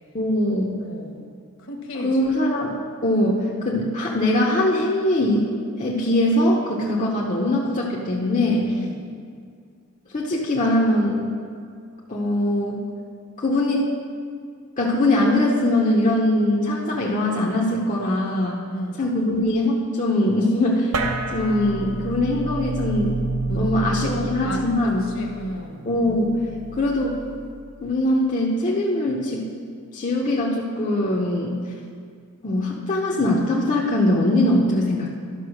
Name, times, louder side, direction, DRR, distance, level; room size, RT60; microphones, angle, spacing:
voice 1, 0.1-0.8 2.0-2.7 3.0-5.5 5.8-8.8 10.1-11.3 12.1-12.9 13.4-13.9 14.8-18.6 19.0-20.9 21.3-23.1 23.5-25.0 25.9-26.4 26.7-27.2 27.8-29.5 29.9-31.6 32.4-35.1, left 1 dB, 35° left, -3 dB, 0.8 m, -21 dB
voice 2, 0.8-1.2 1.6-2.3 8.8-9.0 18.7-19.0 23.5-23.7 24.0-25.9, left 1 dB, 60° left, 2 dB, 1.3 m, -33 dB
sound 1, 20.9-27.7, right 3 dB, 90° right, 0.9 m, -30 dB
11.5 x 5.5 x 6.3 m, 2.2 s
head